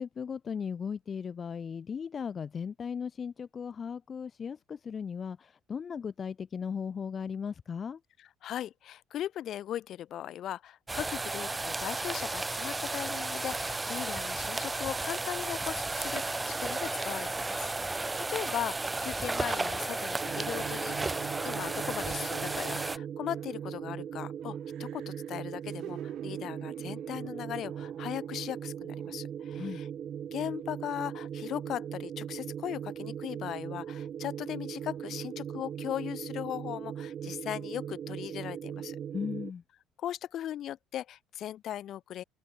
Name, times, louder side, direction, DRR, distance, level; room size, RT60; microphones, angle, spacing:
voice 1, 0.0-8.0 29.5-29.8 39.1-39.6, left 6 dB, 35° left, 1.7 m, -37 dB
voice 2, 8.2-29.9 30.3-39.0 40.0-42.2, left 11 dB, 60° left, 0.6 m, -38 dB
sound 1, 10.9-23.0, right 3 dB, 15° right, 0.8 m, -33 dB
sound 2, 20.2-39.5, right 9 dB, 45° right, 0.4 m, -39 dB
sound 3, 23.2-24.0 24.4-28.6 29.0-29.1, right 13 dB, 65° right, 1.3 m, -48 dB
open air
cardioid pair, 110°, 0 cm